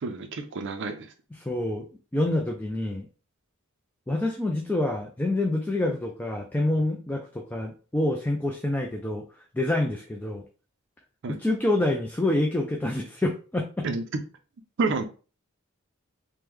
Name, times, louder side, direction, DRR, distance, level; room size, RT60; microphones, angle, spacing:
voice 1, 0.0-1.1 11.2-11.4 13.8-14.0 14.8-15.0, right 4 dB, 55° right, 5 dB, 0.4 m, -29 dB
voice 2, 1.4-1.9 2.1-3.1 4.1-9.2 9.5-10.4 11.3-13.9, left 1 dB, 10° left, 1 dB, 0.3 m, -27 dB
3.1 x 2.1 x 3.5 m, 0.36 s
head